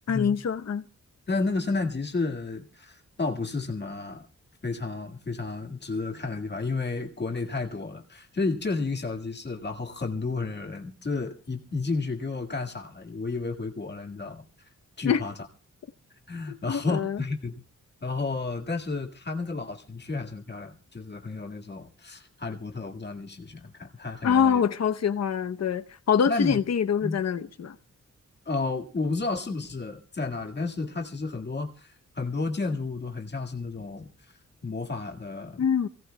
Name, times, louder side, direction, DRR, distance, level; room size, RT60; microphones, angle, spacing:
voice 1, 0.1-0.8 15.0-15.2 16.5-17.2 24.2-27.8 35.6-35.9, left 7 dB, 60° left, 0.8 m, -25 dB
voice 2, 1.3-4.3 4.6-14.4 15.0-15.3 16.3-17.6 18.0-24.6 26.3-26.6 27.0-27.2 28.5-34.1 34.6-35.6, left 3 dB, 35° left, 1.8 m, -32 dB
28.0 x 16.5 x 2.2 m
wide cardioid pair, 155°, 30 cm